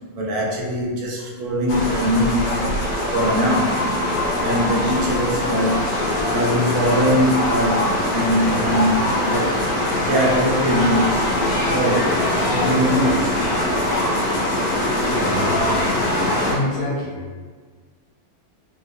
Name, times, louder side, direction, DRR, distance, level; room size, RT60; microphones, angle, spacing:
voice 1, 0.1-2.7 3.1-3.9 4.4-5.9 6.3-9.6 10.0-11.4 11.7-13.4 13.8-13.9 14.9-15.7, equal, 75° right, -3 dB, 1.4 m, -22 dB
sound 1, 1.7-16.6, left 1 dB, 85° left, 0.8 m, -22 dB
sound 2, 3.1-8.8, left 2 dB, 35° left, 0.4 m, -33 dB
voice 2, 16.4-17.2, left 2 dB, 65° left, -5 dB, 1.3 m, -26 dB
3.3 x 2.7 x 2.5 m, 1.5 s
omnidirectional pair, 2.3 m